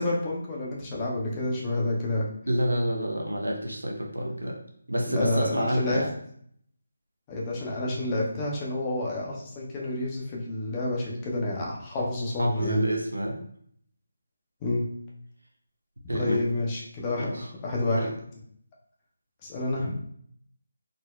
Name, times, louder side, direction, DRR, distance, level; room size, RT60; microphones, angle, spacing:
voice 1, 0.0-2.3 5.1-6.0 7.3-12.8 14.6-14.8 16.1-18.1 19.4-20.0, left 2 dB, 20° left, -4 dB, 0.6 m, -29 dB
voice 2, 2.5-4.6 4.9-6.1 12.4-13.4 16.1-16.4 17.2-17.5 17.9-18.1, right 1 dB, 80° right, 0 dB, 0.6 m, -28 dB
3.7 x 2.1 x 2.3 m, 0.65 s
figure-of-eight pair, 155°, 0 cm